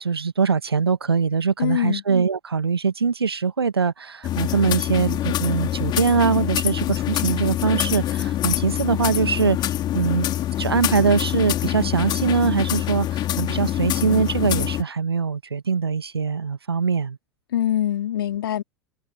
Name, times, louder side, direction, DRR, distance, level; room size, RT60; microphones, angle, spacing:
voice 1, 0.0-10.3 10.6-17.2, right 5 dB, 80° right, 1.3 m, -22 dB
voice 2, 1.6-2.0 17.5-18.6, left 11 dB, 65° left, 2.8 m, -23 dB
sound 1, 4.2-14.8, left 13 dB, 35° left, 2.7 m, -25 dB
figure-of-eight pair, 85°, 13 cm